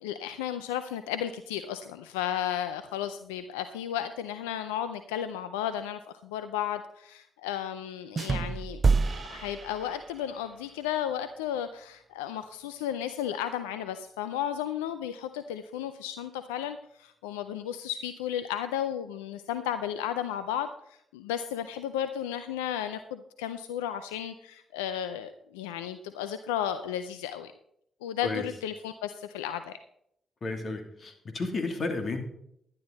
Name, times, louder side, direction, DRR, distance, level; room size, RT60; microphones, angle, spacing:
voice 1, 0.0-8.8 9.3-27.5 28.0-29.8, left 10 dB, 90° left, 10 dB, 0.4 m, -34 dB
sound 1, 8.2-10.4, right 4 dB, 45° right, 0.3 m, -28 dB
voice 2, 30.4-32.2, left 3 dB, 50° left, 4 dB, 2.7 m, -32 dB
11.5 x 10.5 x 4.0 m, 0.73 s
hypercardioid pair, 45°, 0 cm